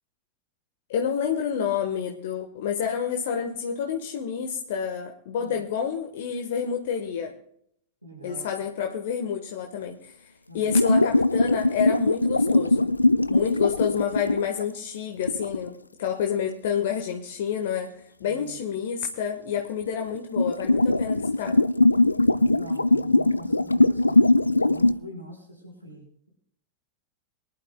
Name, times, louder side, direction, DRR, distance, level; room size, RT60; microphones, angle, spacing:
voice 1, 0.9-7.3 8.2-10.1 10.5-12.9 13.3-17.9 18.2-21.6, left 7 dB, 55° left, 3 dB, 1.2 m, -29 dB
voice 2, 8.0-8.5 10.5-10.7 18.3-18.6 22.3-26.3, right 1 dB, 90° right, 0 dB, 5.0 m, -44 dB
sound 1, 10.6-14.6 15.3-15.7 19.8-24.9, left 2 dB, 80° left, 0.5 m, -21 dB
23.0 x 11.5 x 2.2 m, 0.69 s
figure-of-eight pair, 90°, 0 cm